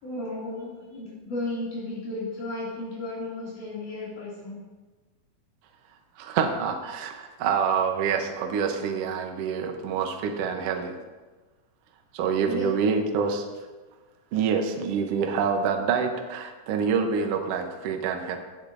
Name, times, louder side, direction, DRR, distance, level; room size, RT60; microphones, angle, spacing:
voice 1, 0.0-4.6 12.5-12.9, left 2 dB, 80° left, -7 dB, 4.1 m, -34 dB
voice 2, 6.2-11.0 12.1-13.4 14.3-18.4, right 6 dB, 65° right, 5 dB, 1.6 m, -26 dB
16.0 x 8.4 x 2.6 m, 1.2 s
omnidirectional pair, 3.6 m